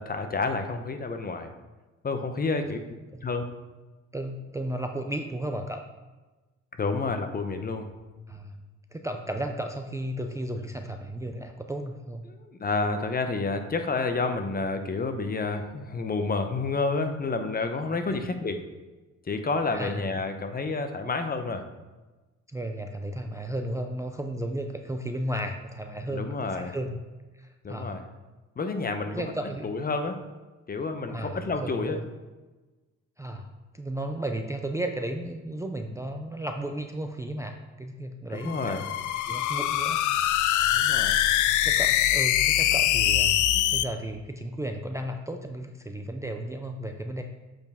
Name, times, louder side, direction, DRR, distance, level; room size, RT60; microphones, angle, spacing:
voice 1, 0.0-1.5 2.0-2.8 3.2-3.4 6.8-7.9 12.3-18.6 19.2-21.6 26.1-26.8 27.6-28.0 28.6-29.2 29.6-30.2 30.7-32.0 38.3-38.9 40.7-41.2, left 3 dB, 30° left, 7 dB, 0.8 m, -29 dB
voice 2, 4.1-5.9 8.3-8.5 8.9-12.2 18.1-18.2 19.7-20.1 22.5-26.9 27.3-28.0 29.1-29.7 31.1-32.0 33.2-33.5 33.7-38.8 39.3-40.0 40.3-40.4 41.6-43.4 43.7-47.2, right 1 dB, 10° right, 4 dB, 0.4 m, -34 dB
sound 1, 38.4-43.8, left 12 dB, 75° left, 0.5 m, -23 dB
7.7 x 4.6 x 3.6 m, 1.2 s
cardioid pair, 90°, 30 cm